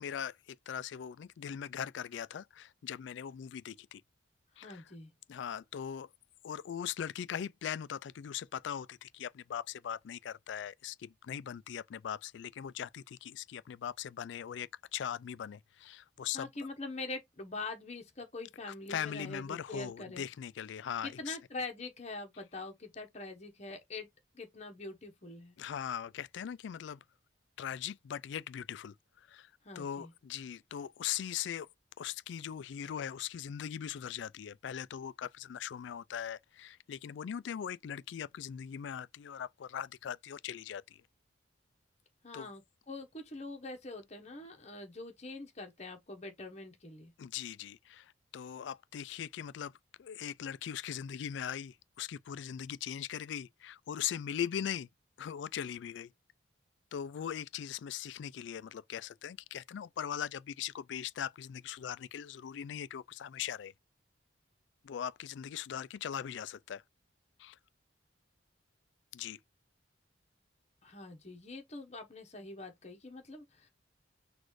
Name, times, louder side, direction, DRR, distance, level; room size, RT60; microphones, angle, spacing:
voice 1, 0.0-4.0 4.6-4.8 5.3-6.1 6.4-16.5 18.9-21.4 25.6-27.0 27.6-29.5 29.8-31.7 32.0-41.0 42.3-42.5 47.2-49.7 50.0-54.9 55.2-56.1 56.9-63.7 64.8-66.8 67.4-67.6 69.1-69.4, left 9 dB, 70° left, 0.3 m, -40 dB
voice 2, 4.6-5.1 16.3-20.3 21.0-24.1 24.3-25.5 29.6-30.1 42.2-47.1 70.8-73.7, left 2 dB, 35° left, 1.1 m, -44 dB
4.1 x 2.5 x 4.6 m
head